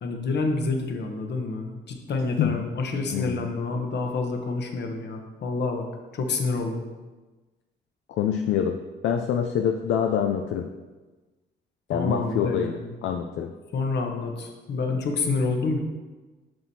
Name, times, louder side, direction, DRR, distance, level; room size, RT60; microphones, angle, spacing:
voice 1, 0.0-5.8 6.1-6.8 11.9-12.9 13.7-15.8, left 3 dB, 60° left, 3 dB, 1.1 m, -28 dB
voice 2, 3.1-3.4 8.2-8.8 9.0-10.7 11.9-13.5, left 8 dB, 75° left, 4 dB, 0.5 m, -25 dB
7.6 x 6.1 x 2.8 m, 1.2 s
cardioid pair, 90°, 20 cm